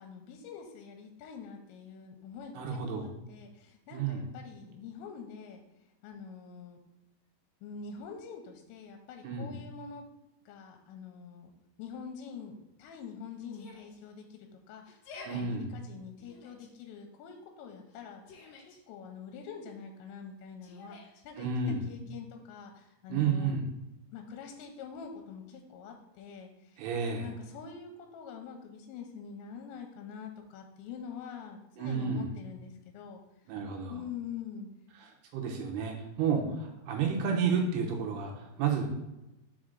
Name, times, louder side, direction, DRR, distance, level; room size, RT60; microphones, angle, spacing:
voice 1, 0.0-2.6 2.9-5.6 6.0-6.8 7.6-10.0 10.5-11.5 11.8-21.5 21.9-23.6 24.1-26.7 27.1-33.2 33.9-34.7, left 6 dB, 85° left, 4 dB, 2.9 m, -45 dB
voice 2, 2.5-3.1 3.9-4.3 9.2-9.6 15.3-15.8 21.4-21.9 23.1-23.7 26.8-27.3 31.8-32.3 33.5-34.0 34.9-38.9, right 5 dB, 80° right, 1 dB, 2.5 m, -31 dB
Yell, 13.5-14.0 14.9-15.4 16.2-16.7 17.9-18.8 20.6-21.2, left 3 dB, 70° left, 2.3 m, -50 dB
6.3 x 4.2 x 3.7 m, 0.96 s
omnidirectional pair, 5.1 m